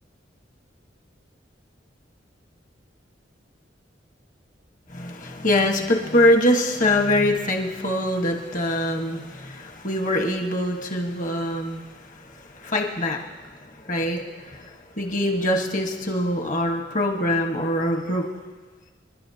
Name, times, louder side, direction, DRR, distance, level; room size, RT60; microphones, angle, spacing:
voice 1, 4.9-13.5 13.8-18.3, left 1 dB, 45° left, 2 dB, 1.4 m, -24 dB
27.0 x 11.5 x 2.8 m, 1.4 s
head